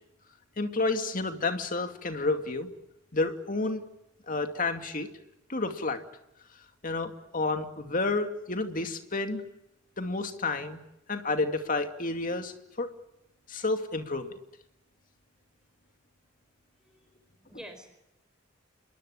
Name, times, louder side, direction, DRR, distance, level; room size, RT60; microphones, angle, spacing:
voice 1, 0.6-2.7 3.1-3.8 4.3-5.1 5.5-6.0 6.8-9.4 10.0-10.8 11.1-12.9 13.5-14.3, left 3 dB, 45° left, 6 dB, 2.5 m, -30 dB
voice 2, 16.8-18.0, equal, 5° right, 6 dB, 4.7 m, -49 dB
27.5 x 22.5 x 9.0 m, 0.86 s
head